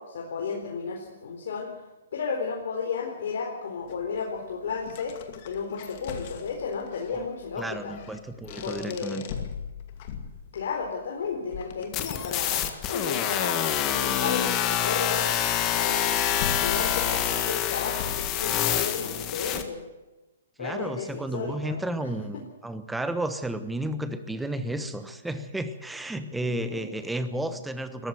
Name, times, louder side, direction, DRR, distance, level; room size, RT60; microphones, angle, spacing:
voice 1, 0.0-1.7 2.1-5.2 5.5-8.0 8.6-9.3 10.5-15.3 15.7-19.8 20.6-22.1 22.3-22.4 26.4-26.8 27.5-27.6, left 5 dB, 65° left, 0 dB, 4.1 m, -33 dB
sound 1, 3.9-18.9, left 7 dB, 40° left, 2.4 m, -41 dB
voice 2, 7.6-9.2 20.6-28.1, right 1 dB, 5° right, 10 dB, 1.2 m, -32 dB
sound 2, 11.9-19.6, left 10 dB, 25° left, 1.6 m, -26 dB
21.0 x 14.5 x 9.3 m, 1.1 s
hypercardioid pair, 160°, 0 cm